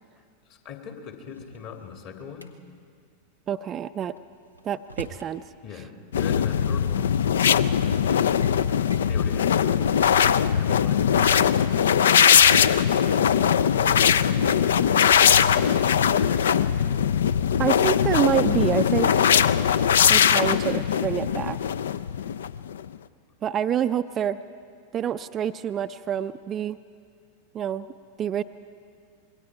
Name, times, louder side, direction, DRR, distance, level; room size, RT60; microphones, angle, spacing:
voice 1, 0.5-2.5 5.6-7.3 9.0-9.9 10.4-11.6 13.8-15.5, left 6 dB, 45° left, 4 dB, 2.4 m, -40 dB
Drawer open or close, 1.1-2.5 4.2-5.3 6.6-6.7 7.5-7.8 8.1-8.6 8.9-9.1 9.6-9.7 9.9-10.1 11.1-13.1 14.2-15.6, right 1 dB, 90° left, 1.0 m, -42 dB
voice 2, 3.5-4.1 4.6-5.4 16.7-16.8 17.6-19.4 20.1-21.6 23.4-24.4 24.9-26.8 27.5-27.9 28.2-28.4, right 9 dB, 25° right, 11 dB, 0.4 m, -27 dB
sound 1, 6.1-22.8, left 8 dB, 65° left, 0.5 m, -20 dB
26.5 x 21.5 x 4.7 m, 2.1 s
figure-of-eight pair, 90°, 0 cm